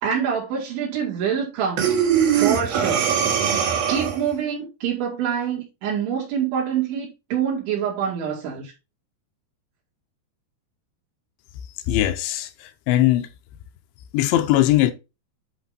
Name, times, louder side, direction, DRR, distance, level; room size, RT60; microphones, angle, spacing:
voice 1, 0.0-2.0 2.2-3.1 3.5-8.7, right 8 dB, 80° right, 5.1 m, -26 dB
Breathing, 1.8-4.3, right 8 dB, 60° right, 2.9 m, -21 dB
voice 2, 11.9-12.5 12.9-13.3 14.1-14.9, left 14 dB, 80° left, 3.0 m, -19 dB
11.0 x 4.0 x 4.0 m
omnidirectional pair, 5.3 m